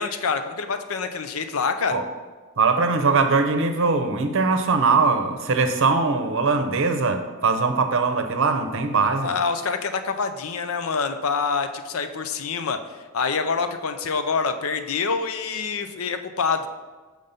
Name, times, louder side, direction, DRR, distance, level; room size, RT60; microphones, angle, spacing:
voice 1, 0.0-2.0 9.2-12.8 13.1-16.7, left 5 dB, 65° left, 9 dB, 0.6 m, -26 dB
voice 2, 2.6-9.3, right 4 dB, 60° right, 8 dB, 0.7 m, -21 dB
6.4 x 5.3 x 5.6 m, 1.4 s
head